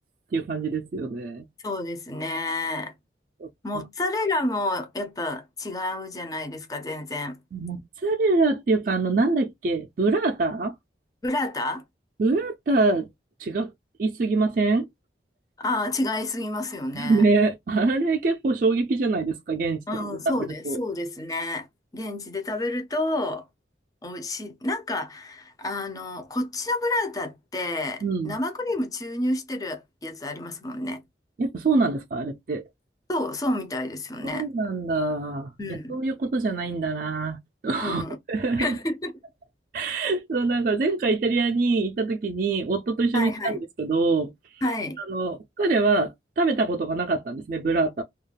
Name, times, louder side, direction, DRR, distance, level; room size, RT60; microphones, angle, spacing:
voice 1, 0.3-1.4 3.4-3.5 7.5-10.7 12.2-13.1 13.4-13.7 14.0-14.9 16.9-20.8 28.0-28.4 31.4-32.6 34.2-35.5 35.9-37.4 37.6-38.0 38.3-38.8 39.7-44.3 45.0-48.0, right 3 dB, 50° right, 0.3 m, -24 dB
voice 2, 1.6-2.9 3.6-7.4 11.2-11.8 15.6-17.2 19.9-21.7 21.9-23.4 24.0-31.0 33.1-34.5 35.6-36.0 37.8-38.2 38.6-39.1 43.1-43.6 44.6-45.0, left 2 dB, 20° left, 0.4 m, -29 dB
2.3 x 2.1 x 3.2 m
head